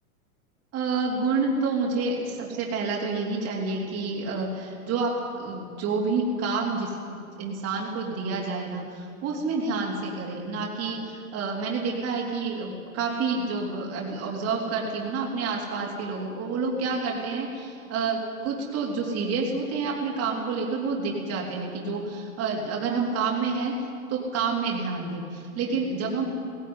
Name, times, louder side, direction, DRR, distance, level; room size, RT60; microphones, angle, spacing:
voice 1, 0.7-23.7 24.1-26.2, right 4 dB, 35° right, -2 dB, 3.8 m, -29 dB
17.5 x 17.0 x 9.8 m, 2.3 s
hypercardioid pair, 120°, 43 cm